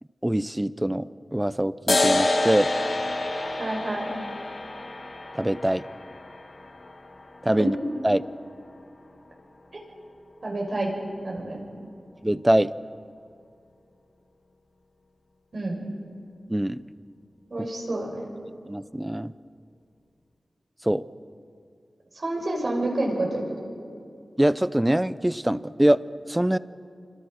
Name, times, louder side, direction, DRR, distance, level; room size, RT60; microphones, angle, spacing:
voice 1, 0.2-2.7 5.3-5.8 7.4-7.7 8.0-8.2 12.2-12.7 16.5-16.8 18.7-19.3 20.8-21.0 24.4-26.0 26.3-26.6, right 1 dB, 10° right, 16 dB, 0.7 m, -23 dB
sound 1, 1.9-8.9, left 2 dB, 60° left, 2.9 m, -28 dB
voice 2, 3.6-4.1 7.6-7.7 9.7-9.8 10.4-10.9 11.2-11.6 15.5-15.8 17.5-18.3 22.2-23.4, right 2 dB, 60° right, 0 dB, 6.2 m, -28 dB
26.5 x 26.0 x 6.6 m, 2.4 s
wide cardioid pair, 75°, 0 cm